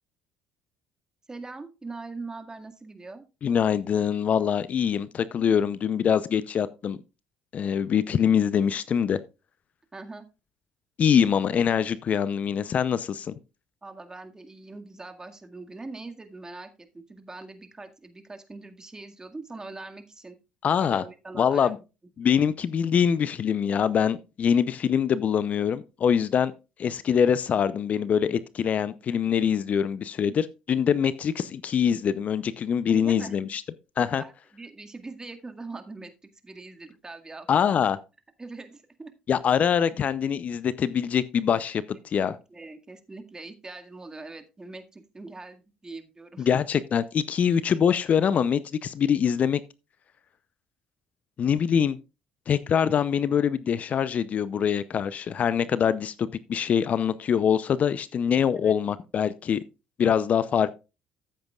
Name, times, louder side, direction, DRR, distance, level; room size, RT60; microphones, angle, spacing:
voice 1, 1.3-3.2 9.9-10.3 13.8-20.4 20.8-21.8 32.9-33.5 34.2-36.1 36.4-37.7 38.4-39.1 42.2-46.6 48.3-48.4 58.6-58.7, right 3 dB, 20° right, 1.9 m, -42 dB
voice 2, 3.4-7.0 7.5-9.2 11.0-13.3 20.6-21.0 21.4-21.8 22.2-26.5 26.8-33.6 34.0-34.2 37.5-38.0 39.3-42.3 46.4-49.6 51.4-52.0 52.5-59.6 60.0-60.7, left 8 dB, 50° left, 0.6 m, -24 dB
14.5 x 7.9 x 2.4 m
hypercardioid pair, 60°, 3 cm